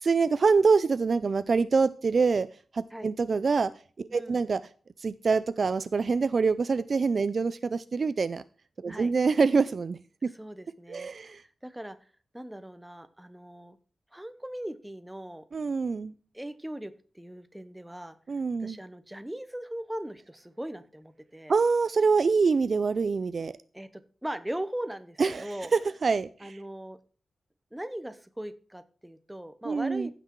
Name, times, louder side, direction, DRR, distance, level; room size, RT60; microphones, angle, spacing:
voice 1, 0.0-2.5 2.7-3.7 4.0-4.6 5.0-8.4 8.8-10.3 10.9-11.4 15.5-16.1 18.3-18.8 21.5-23.5 25.2-26.6 29.6-30.1, right 4 dB, 45° right, 15 dB, 0.4 m, -25 dB
voice 2, 4.1-4.4 8.9-9.1 10.3-12.0 12.3-13.8 14.1-15.4 16.3-18.2 18.6-21.5 23.7-25.7 26.4-27.0 27.7-30.1, right 1 dB, 5° right, 11 dB, 0.8 m, -39 dB
15.0 x 6.0 x 4.6 m, 0.39 s
wide cardioid pair, 165°, 0 cm